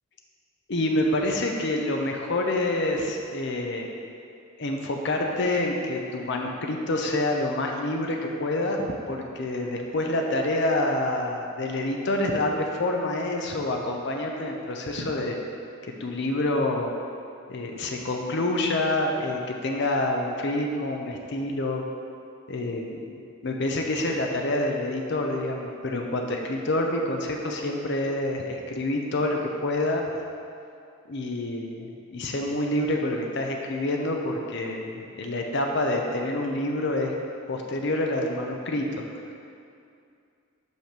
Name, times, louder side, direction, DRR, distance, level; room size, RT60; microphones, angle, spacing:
voice 1, 0.7-3.9 4.6-15.4 16.0-16.9 17.5-21.8 22.5-30.0 31.1-37.1 37.5-38.9, left 1 dB, 55° left, 1 dB, 0.6 m, -27 dB
5.4 x 5.1 x 5.9 m, 2.5 s
head